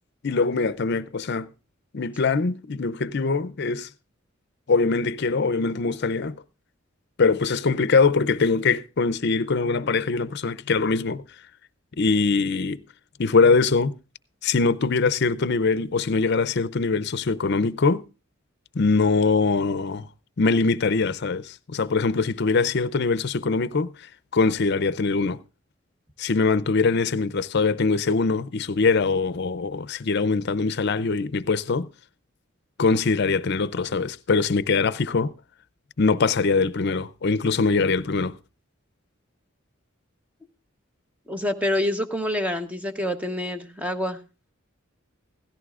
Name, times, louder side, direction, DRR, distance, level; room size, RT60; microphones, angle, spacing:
voice 1, 0.2-1.5 1.9-3.9 4.7-6.4 7.2-11.2 12.0-12.8 13.2-14.0 14.4-18.0 18.7-20.1 20.4-23.9 24.3-25.4 26.2-31.9 32.8-35.3 36.0-38.4, left 4 dB, 55° left, 0.6 m, -22 dB
voice 2, 41.3-44.2, left 1 dB, 5° right, 0.9 m, -27 dB
17.0 x 14.5 x 2.5 m
head